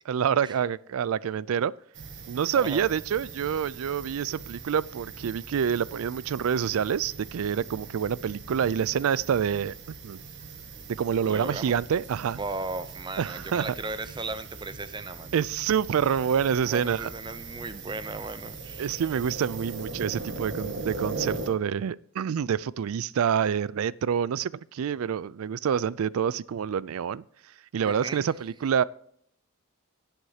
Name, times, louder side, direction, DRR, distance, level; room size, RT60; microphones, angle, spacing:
voice 1, 0.0-1.7 2.3-9.7 10.0-10.2 10.9-12.4 13.2-13.7 15.3-17.1 18.8-27.2 27.7-28.8, right 8 dB, 80° right, 0.4 m, -27 dB
sound 1, 1.9-21.5, right 3 dB, 55° right, 1.6 m, -40 dB
voice 2, 2.5-2.9 11.2-11.8 12.3-15.3 16.6-19.0 27.8-28.2, right 2 dB, 20° right, 0.6 m, -36 dB
17.0 x 8.0 x 2.8 m
head